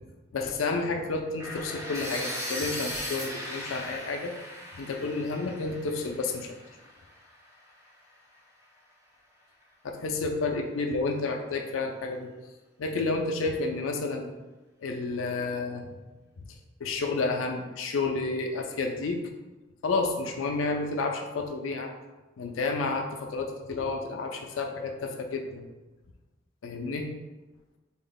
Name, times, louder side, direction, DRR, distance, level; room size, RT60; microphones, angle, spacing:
voice 1, 0.3-4.3 4.7-6.6 9.8-12.3 12.8-14.3 14.8-15.9 16.8-19.2 19.8-21.9 22.4-25.6 26.6-27.1, left 3 dB, 85° left, 3 dB, 0.4 m, -30 dB
sound 1, 1.4-7.3, equal, 15° right, 0.6 m, -38 dB
3.8 x 2.1 x 3.8 m, 1.1 s
head